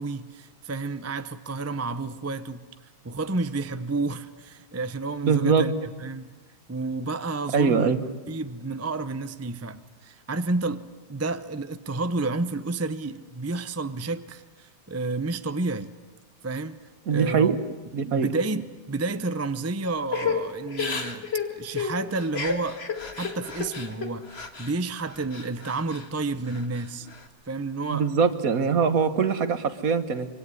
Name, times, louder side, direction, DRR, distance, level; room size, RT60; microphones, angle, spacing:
voice 1, 0.0-2.6 3.0-6.3 6.7-7.9 8.3-10.8 11.1-15.9 16.4-16.8 17.1-17.7 18.0-22.8 23.2-27.1 27.5-28.1, right 3 dB, 15° right, 0.5 m, -30 dB
voice 2, 5.2-5.7 7.5-8.0 17.1-17.5 17.9-18.3 27.9-30.3, right 6 dB, 55° right, 1.7 m, -22 dB
Crying sobbing / Breathing, 20.1-24.7 25.1-26.1 26.5-27.2, left 5 dB, 40° left, 2.0 m, -32 dB
25.0 x 24.0 x 9.7 m
omnidirectional pair, 1.8 m